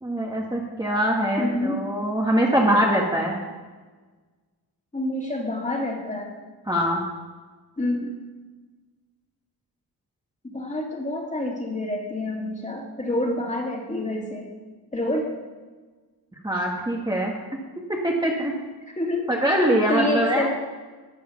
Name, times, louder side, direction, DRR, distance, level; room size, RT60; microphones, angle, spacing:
voice 1, 0.0-3.4 6.7-7.0 16.4-17.3 18.0-18.5 19.3-20.5, equal, 10° right, -2 dB, 1.5 m, -23 dB
voice 2, 1.4-1.8 4.9-6.3 7.8-8.1 10.4-14.5 14.9-15.3 19.0-19.3 19.9-20.5, left 1 dB, 20° left, 0 dB, 2.4 m, -27 dB
12.5 x 8.4 x 5.7 m, 1.3 s
wide cardioid pair, 110°, 38 cm